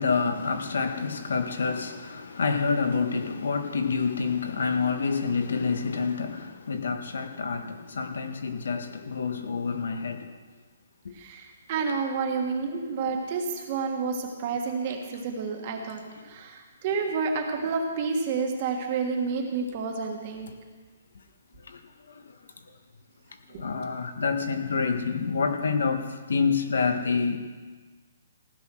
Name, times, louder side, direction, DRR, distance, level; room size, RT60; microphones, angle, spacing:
voice 1, 0.0-10.3 11.0-11.1 21.7-21.8 22.1-22.2 23.5-27.4, left 5 dB, 70° left, 1.4 m, -28 dB
voice 2, 11.1-16.0 16.3-20.5 23.5-23.6, right 5 dB, 25° right, 1.5 m, -29 dB
16.0 x 9.7 x 6.2 m
hypercardioid pair, 180°, 0 cm